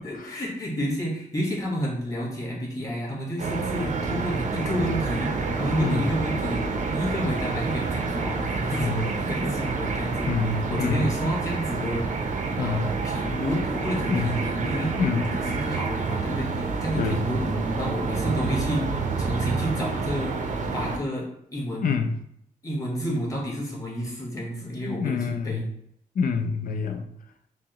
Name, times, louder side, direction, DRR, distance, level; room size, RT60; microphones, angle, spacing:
voice 1, 0.0-10.3 10.7-15.0 15.3-17.4 17.7-21.9 22.6-25.6 26.2-26.6, equal, 20° left, -4 dB, 1.5 m, -30 dB
sound 1, 3.4-21.0, right 4 dB, 55° right, 0.6 m, -28 dB
voice 2, 5.8-6.2 8.7-9.1 10.3-11.1 12.6-13.0 14.1-14.4 15.0-15.3 17.0-17.2 21.8-22.2 24.9-25.7 26.2-27.1, left 5 dB, 65° left, 6 dB, 0.5 m, -27 dB
5.9 x 2.1 x 2.9 m, 0.71 s
cardioid pair, 110°, 15 cm